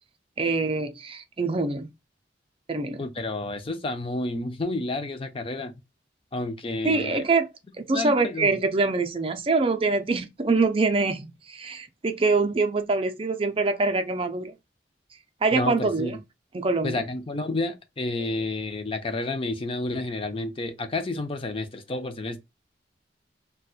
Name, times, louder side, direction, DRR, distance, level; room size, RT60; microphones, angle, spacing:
voice 1, 0.4-1.9 2.7-3.0 6.8-7.5 7.9-14.5 15.4-16.2 16.5-17.0, right 3 dB, 30° right, 0.5 m, -24 dB
voice 2, 3.0-5.8 6.3-7.3 7.9-8.6 15.5-16.2 16.8-22.4, left 2 dB, 30° left, 0.5 m, -30 dB
4.1 x 2.2 x 2.3 m
head